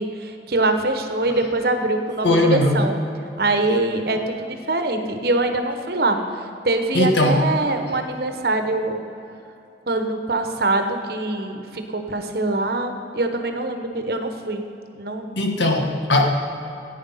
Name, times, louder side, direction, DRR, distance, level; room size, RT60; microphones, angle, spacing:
voice 1, 0.0-3.0 3.4-6.2 6.6-9.0 9.9-14.6 14.9-15.3, right 2 dB, 60° right, 6 dB, 1.1 m, -23 dB
voice 2, 2.2-2.9 6.9-7.5 15.3-16.3, left 1 dB, 85° left, 3 dB, 1.5 m, -19 dB
14.5 x 9.3 x 5.6 m, 2.9 s
head